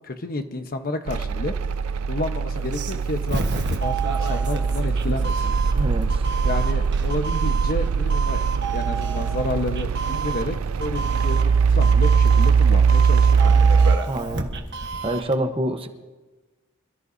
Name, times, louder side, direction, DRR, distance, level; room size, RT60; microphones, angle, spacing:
voice 1, 0.0-1.5 2.1-5.5 6.4-8.4 8.7-13.9, left 2 dB, 45° left, 6 dB, 1.1 m, -30 dB
sound 1, 1.1-14.0, right 5 dB, 75° right, 0.4 m, -21 dB
Doorbell, 2.6-15.4, right 4 dB, 55° right, 1.3 m, -31 dB
voice 2, 5.7-6.3 14.1-14.5 15.0-15.9, right 1 dB, 25° right, 6 dB, 1.0 m, -26 dB
26.5 x 14.0 x 2.7 m, 1.2 s
head